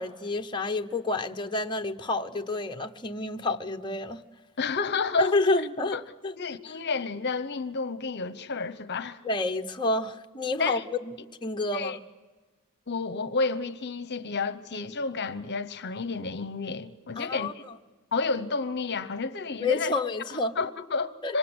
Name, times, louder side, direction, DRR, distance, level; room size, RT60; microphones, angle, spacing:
voice 1, 0.0-4.2 5.2-6.0 6.2-6.3 9.2-10.8 11.1-11.2 11.4-12.0 17.2-17.5 19.6-20.6 21.2-21.4, left 2 dB, 20° left, 0.9 m, -29 dB
voice 2, 4.6-5.4 5.9-6.0 6.4-9.2 10.6-10.8 11.7-12.0 12.9-17.5 18.1-19.9 20.6-21.4, left 4 dB, 50° left, 1.0 m, -30 dB
26.0 x 25.5 x 8.0 m
head